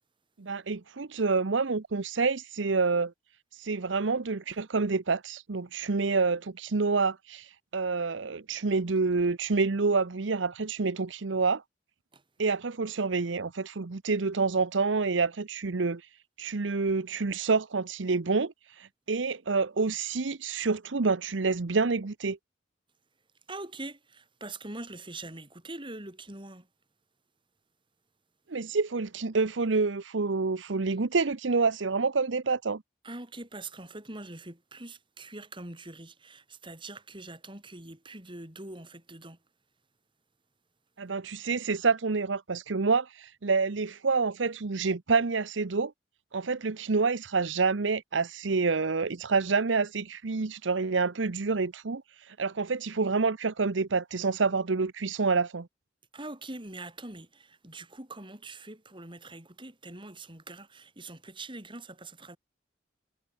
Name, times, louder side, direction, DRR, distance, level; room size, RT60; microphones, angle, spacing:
voice 1, 0.4-3.1 3.6-7.5 7.7-11.6 12.4-16.0 16.4-18.5 18.8-22.4 28.5-32.8 41.0-45.9 46.3-52.0 52.3-55.7, right 4 dB, 80° right, 0.8 m, -28 dB
voice 2, 23.5-26.7 33.0-39.4 56.1-62.4, right 2 dB, 25° right, 5.5 m, -43 dB
head